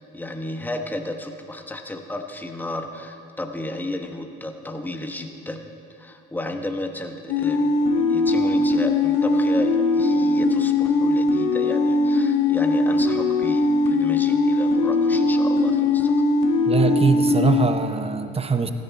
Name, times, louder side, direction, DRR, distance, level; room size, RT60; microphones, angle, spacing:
voice 1, 0.0-5.7 6.0-16.1, left 1 dB, 5° left, 5 dB, 1.2 m, -33 dB
sound 1, 7.3-17.7, left 2 dB, 75° left, 1.4 m, -20 dB
voice 2, 16.7-18.7, right 5 dB, 15° right, 9 dB, 0.9 m, -22 dB
15.5 x 10.5 x 4.2 m, 2.5 s
hypercardioid pair, 70°, 33 cm